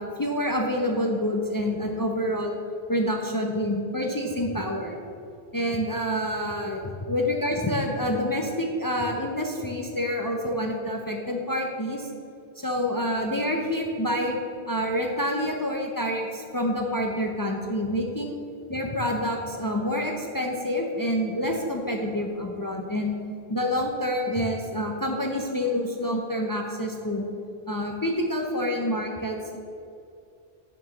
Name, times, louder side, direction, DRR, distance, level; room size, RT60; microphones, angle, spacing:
voice 1, 0.0-2.6 2.9-5.0 5.5-12.1 12.6-14.4 14.7-18.3 18.7-23.2 23.5-27.2 27.7-29.6, equal, 25° left, 1 dB, 0.5 m, -27 dB
7.1 x 4.5 x 6.4 m, 2.5 s
omnidirectional pair, 1.1 m